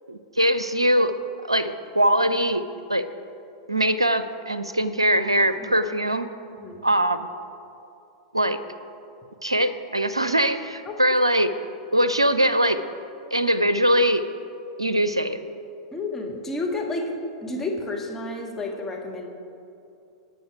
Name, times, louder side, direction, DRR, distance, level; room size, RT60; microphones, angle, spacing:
voice 1, 0.1-1.1 1.5-2.6 2.9-3.0 3.7-6.3 6.8-7.3 8.3-8.6 9.4-11.5 11.9-12.8 13.3-14.2 14.8-15.4, equal, 85° right, 11 dB, 0.5 m, -22 dB
voice 2, 15.9-17.0 17.4-19.3, left 2 dB, 10° left, -2 dB, 1.7 m, -30 dB
18.5 x 6.5 x 4.8 m, 2.7 s
figure-of-eight pair, 95°, 3 cm